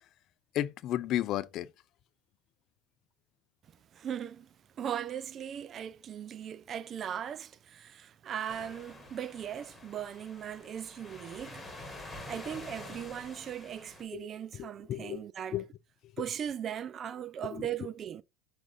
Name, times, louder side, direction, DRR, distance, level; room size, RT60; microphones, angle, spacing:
voice 1, 0.5-1.7 14.1-14.3 14.6-15.2 15.5-15.7 17.5-17.7, left 12 dB, 50° left, 0.4 m, -33 dB
voice 2, 3.9-4.5 4.8-15.6 16.2-18.2, right 9 dB, 40° right, 0.3 m, -39 dB
sound 1, 8.5-14.0, left 1 dB, 15° left, 1.8 m, -47 dB
5.9 x 2.6 x 3.5 m
hypercardioid pair, 80°, 0 cm